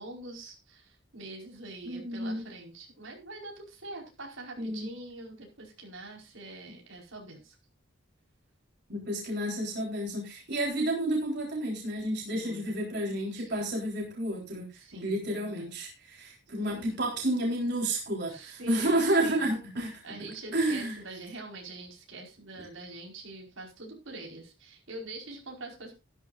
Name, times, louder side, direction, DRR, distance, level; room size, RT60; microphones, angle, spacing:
voice 1, 0.0-7.6 12.3-12.8 13.3-13.5 14.7-15.7 16.2-16.3 16.6-17.0 18.3-19.5 20.0-25.9, right 2 dB, 85° right, 0 dB, 4.8 m, -44 dB
voice 2, 1.8-2.4 4.6-4.9 8.9-14.7 14.9-20.9 22.6-22.7, right 1 dB, 55° right, -1 dB, 3.9 m, -31 dB
14.5 x 13.0 x 2.6 m, 0.27 s
head